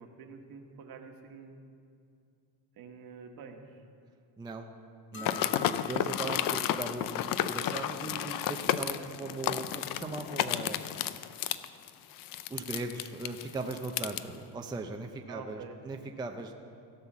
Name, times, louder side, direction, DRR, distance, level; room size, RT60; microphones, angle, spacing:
voice 1, 0.0-1.8 2.7-3.8 15.3-15.8, right 5 dB, 60° right, 4 dB, 1.4 m, -47 dB
voice 2, 4.4-4.7 5.1-11.1 12.5-16.6, right 3 dB, 10° right, 4 dB, 0.4 m, -39 dB
sound 1, 5.1-6.5, left 5 dB, 30° left, 1.4 m, -45 dB
sound 2, 5.2-14.2, left 11 dB, 55° left, 0.5 m, -32 dB
16.5 x 5.6 x 7.2 m, 2.4 s
cardioid pair, 130°, 41 cm